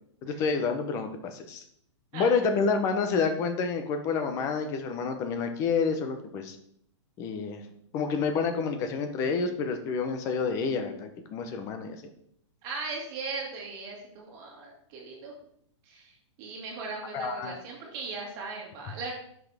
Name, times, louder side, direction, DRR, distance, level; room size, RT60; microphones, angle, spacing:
voice 1, 0.2-1.6 2.1-6.6 7.2-7.6 7.9-12.0 17.1-17.5, left 5 dB, 20° left, 7 dB, 0.8 m, -28 dB
voice 2, 2.1-2.5 12.6-15.3 15.9-19.1, right 3 dB, 25° right, -1 dB, 2.2 m, -38 dB
10.5 x 6.1 x 3.5 m, 0.69 s
hypercardioid pair, 170°, 16 cm